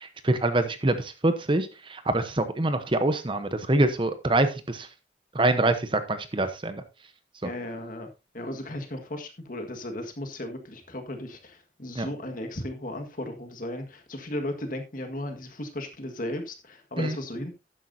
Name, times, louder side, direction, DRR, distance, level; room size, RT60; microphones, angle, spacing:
voice 1, 0.0-4.9 5.3-6.8 12.0-12.1 17.0-17.2, right 2 dB, 30° right, 10 dB, 0.9 m, -25 dB
voice 2, 7.4-8.1 8.3-17.5, left 1 dB, 50° left, 5 dB, 1.7 m, -35 dB
12.0 x 9.2 x 2.7 m, 0.28 s
head